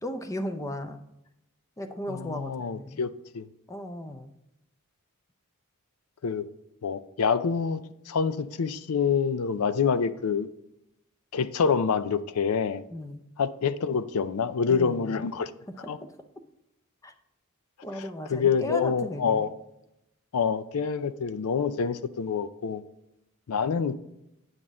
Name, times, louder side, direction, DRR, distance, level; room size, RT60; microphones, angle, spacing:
voice 1, 0.0-1.0 1.8-3.0 3.7-4.3 12.9-13.2 14.7-15.2 16.0-16.1 17.0-17.1 17.8-19.5, left 1 dB, 15° left, 0.6 m, -36 dB
voice 2, 2.1-3.5 6.2-6.5 6.8-10.5 11.3-12.8 13.4-15.5 15.9-16.0 18.3-19.5 20.3-22.8 23.5-24.0, left 6 dB, 80° left, 0.5 m, -27 dB
9.1 x 6.0 x 3.7 m
head